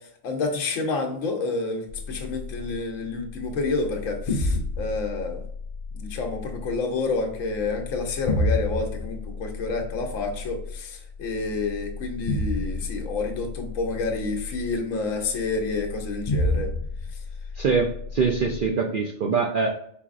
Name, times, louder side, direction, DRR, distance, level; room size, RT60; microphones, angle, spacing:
voice 1, 0.2-5.4 5.9-16.7, left 3 dB, 75° left, 3 dB, 1.1 m, -29 dB
sound 1, 1.9-18.7, left 2 dB, 55° left, 0.4 m, -31 dB
voice 2, 17.6-19.7, right 5 dB, 65° right, 1 dB, 0.5 m, -24 dB
4.4 x 4.1 x 2.5 m, 0.67 s
omnidirectional pair, 1.4 m